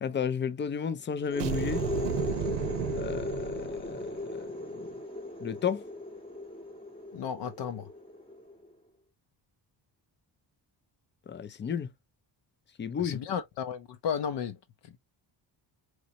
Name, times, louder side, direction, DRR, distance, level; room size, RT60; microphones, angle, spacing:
voice 1, 0.0-1.8 2.9-4.8 5.4-5.8 11.3-11.9 12.8-13.2, left 7 dB, 30° left, 0.4 m, -33 dB
sound 1, 1.2-8.7, left 1 dB, 15° left, 0.8 m, -37 dB
sound 2, 1.4-4.2, right 10 dB, 80° right, 0.7 m, -34 dB
voice 2, 7.1-7.9 13.0-14.6 14.8-14.9, left 7 dB, 70° left, 0.6 m, -34 dB
3.9 x 3.1 x 2.8 m
cardioid pair, 140°, 43 cm